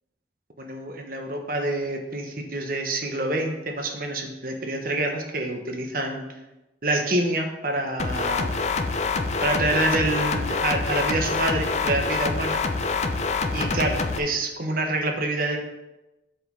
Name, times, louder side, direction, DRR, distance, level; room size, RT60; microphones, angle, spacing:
voice 1, 0.6-6.2 6.8-8.5 9.4-12.6 13.5-15.6, right 2 dB, 50° right, 3 dB, 1.2 m, -27 dB
sound 1, 8.0-14.2, left 4 dB, 40° left, 0.6 m, -26 dB
7.6 x 5.1 x 5.4 m, 1.0 s
head